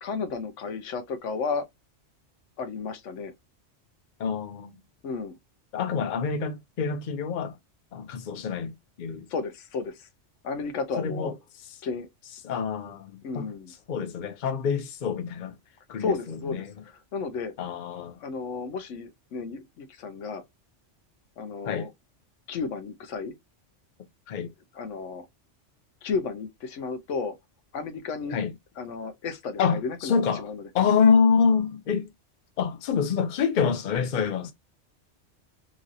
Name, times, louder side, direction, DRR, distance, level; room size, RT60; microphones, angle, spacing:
voice 1, 0.0-1.6 2.6-3.3 5.0-5.4 9.3-10.1 10.4-11.3 11.8-12.1 13.2-13.7 16.0-17.5 18.2-20.4 21.4-21.9 22.5-23.3 24.7-25.3 26.0-27.3 27.7-28.4 28.8-30.7, left 4 dB, 85° left, 1.0 m, -33 dB
voice 2, 4.2-4.8 5.7-7.6 7.9-9.2 11.0-11.3 12.4-13.5 13.9-15.5 15.9-16.7 17.6-18.2 21.6-21.9 24.3-24.5 28.3-28.5 29.6-30.5 30.7-32.1 32.6-34.5, left 6 dB, 50° left, 0.6 m, -26 dB
3.0 x 2.5 x 2.6 m
omnidirectional pair, 1.2 m